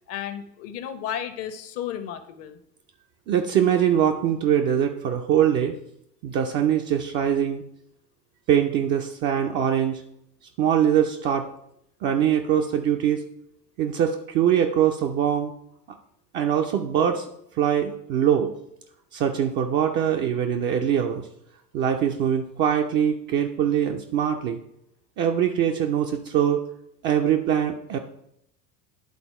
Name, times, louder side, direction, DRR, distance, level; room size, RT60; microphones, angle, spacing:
voice 1, 0.1-2.6, left 9 dB, 30° left, 11 dB, 0.6 m, -33 dB
voice 2, 3.3-5.7 6.2-7.6 8.5-10.0 10.6-11.5 12.0-13.2 13.8-15.5 16.3-17.3 17.6-18.5 19.1-21.3 21.7-24.6 25.2-26.6 27.0-28.0, right 9 dB, 25° right, 3 dB, 0.4 m, -22 dB
11.0 x 4.0 x 4.4 m, 0.76 s
figure-of-eight pair, 75°, 50 cm